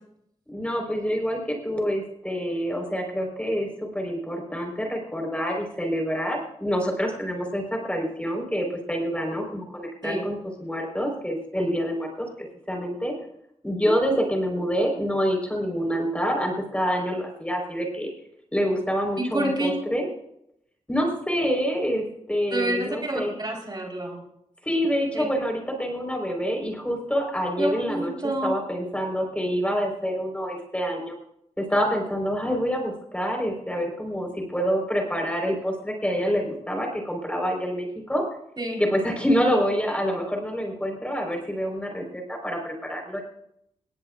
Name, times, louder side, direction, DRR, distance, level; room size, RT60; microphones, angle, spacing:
voice 1, 0.5-3.7 3.9-13.1 13.6-18.1 18.5-20.1 20.9-23.3 24.6-28.1 28.4-31.1 31.6-38.2 38.8-43.2, equal, 10° left, 1 dB, 4.6 m, -27 dB
voice 2, 19.2-19.7 22.5-24.2 25.1-25.2 27.6-28.5 38.6-38.8, right 1 dB, 35° right, 0 dB, 4.5 m, -28 dB
18.5 x 18.5 x 2.6 m, 0.76 s
cardioid pair, 60°, 12 cm